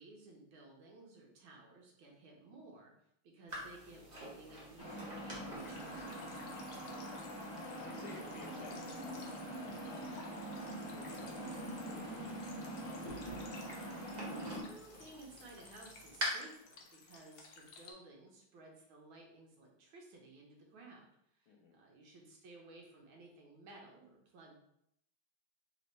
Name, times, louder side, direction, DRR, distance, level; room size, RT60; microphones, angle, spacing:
voice 1, 0.0-2.9 3.2-6.4 14.7-21.1 21.3-24.5, right 2 dB, 85° right, 0 dB, 1.7 m, -56 dB
sound 1, 3.5-16.2, right 1 dB, 35° right, 0.7 m, -50 dB
sound 2, 4.8-14.6, right 1 dB, 25° left, 0.6 m, -44 dB
sound 3, 5.5-17.9, left 4 dB, 65° left, 1.0 m, -57 dB
voice 2, 6.9-9.3 9.6-10.3 10.9-13.6 21.5-21.8, left 4 dB, 80° left, 1 dB, 1.6 m, -56 dB
4.1 x 2.9 x 3.2 m, 0.75 s
omnidirectional pair, 2.2 m